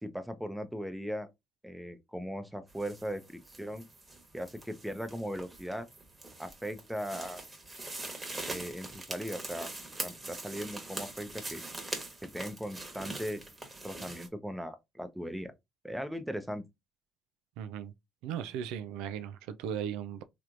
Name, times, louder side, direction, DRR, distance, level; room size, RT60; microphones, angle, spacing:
voice 1, 0.0-1.3 1.6-3.9 4.3-5.9 6.4-7.4 8.5-9.7 10.0-11.6 12.2-13.4 13.8-15.5 15.8-16.6, equal, 5° right, 0.7 m, -38 dB
sound 1, 2.7-14.3, right 2 dB, 20° right, 1.3 m, -43 dB
voice 2, 17.6-17.9 18.2-20.2, right 9 dB, 80° right, 0.3 m, -37 dB
3.3 x 3.0 x 2.5 m
supercardioid pair, 70°, 0 cm